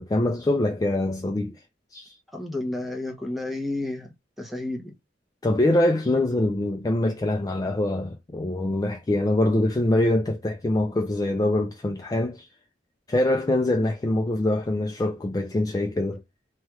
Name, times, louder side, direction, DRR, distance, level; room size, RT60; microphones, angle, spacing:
voice 1, 0.0-1.6 1.9-2.1 5.4-12.5 13.1-16.2, left 1 dB, 20° left, 0.3 m, -24 dB
voice 2, 2.3-4.9, left 2 dB, ahead, 0.7 m, -31 dB
3.2 x 2.3 x 2.8 m
head